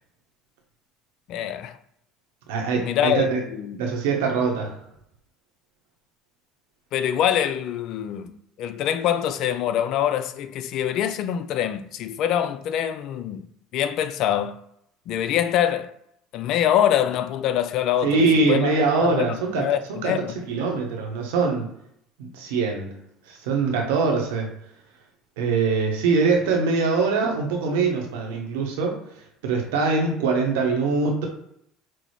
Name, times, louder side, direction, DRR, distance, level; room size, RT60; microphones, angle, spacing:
voice 1, 1.3-1.8 2.8-3.8 6.9-13.4 13.7-14.6 15.1-15.9 16.3-19.2 19.6-20.3, left 10 dB, 60° left, 0.4 m, -24 dB
voice 2, 2.5-3.4 3.8-4.7 18.0-20.2 20.5-21.7 22.2-23.0 23.3-24.5 25.4-29.0 29.4-31.3, right 4 dB, 90° right, 1.0 m, -23 dB
6.1 x 2.0 x 3.1 m
supercardioid pair, 105°, 0 cm